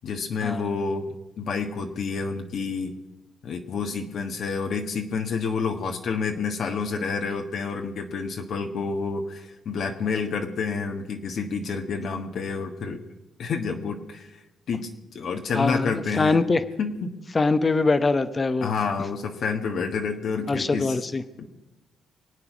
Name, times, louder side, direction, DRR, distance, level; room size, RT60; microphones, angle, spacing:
voice 1, 0.0-1.1 1.4-3.0 3.4-13.0 13.4-14.4 14.7-16.4 16.8-17.2 18.6-21.0 21.4-21.5, left 5 dB, 65° left, 3 dB, 1.4 m, -29 dB
voice 2, 15.6-16.6 17.3-18.7 20.5-21.2, left 3 dB, 30° left, 12 dB, 0.9 m, -23 dB
24.0 x 8.7 x 6.1 m, 1.0 s
cardioid pair, 90°, 0 cm